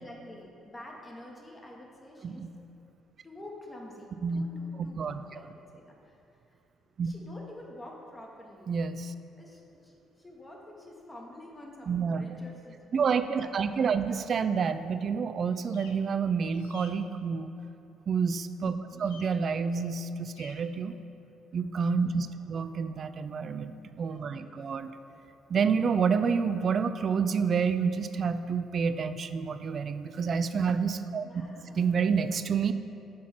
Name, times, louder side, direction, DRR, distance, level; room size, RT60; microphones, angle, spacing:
voice 1, 0.0-2.5 3.2-6.2 7.0-8.8 9.4-14.3 18.9-19.2 22.3-22.8 24.4-25.2 31.2-31.8, left 1 dB, 20° left, -1 dB, 1.4 m, -49 dB
voice 2, 4.8-5.2 7.0-7.1 8.7-9.1 11.9-12.4 12.9-17.5 18.1-20.9 21.5-24.9 25.5-31.3 31.7-32.7, right 6 dB, 50° right, 11 dB, 0.3 m, -29 dB
sound 1, 15.5-15.9 16.5-16.9 19.0-19.3 20.3-20.6, left 6 dB, 85° left, 0.5 m, -52 dB
5.9 x 4.7 x 5.9 m, 2.7 s
hypercardioid pair, 50°, 0 cm